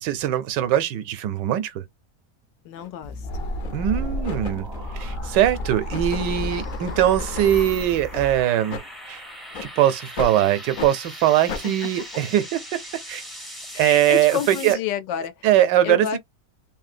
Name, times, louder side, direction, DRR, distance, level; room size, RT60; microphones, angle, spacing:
voice 1, 0.0-1.8 3.7-4.7 4.9-8.8 9.1-9.2 9.6-12.8 13.1-13.2 13.8-14.8 15.4-16.2, right 12 dB, 80° right, 1.2 m, -21 dB
voice 2, 2.6-3.5 11.6-11.9 13.7-15.5 15.8-16.2, left 9 dB, 90° left, 1.3 m, -30 dB
sound 1, 2.8-2.9 3.6-3.9 4.2-7.6 8.1-8.3 8.7-8.9 9.5-9.7 10.2-10.4 10.7-10.9 11.5-11.7, left 4 dB, 70° left, 0.4 m, -36 dB
sound 2, 3.0-8.4, equal, 50° left, 0.8 m, -31 dB
sound 3, 3.1-14.7, equal, ahead, 0.5 m, -41 dB
3.1 x 2.8 x 2.5 m
omnidirectional pair, 1.9 m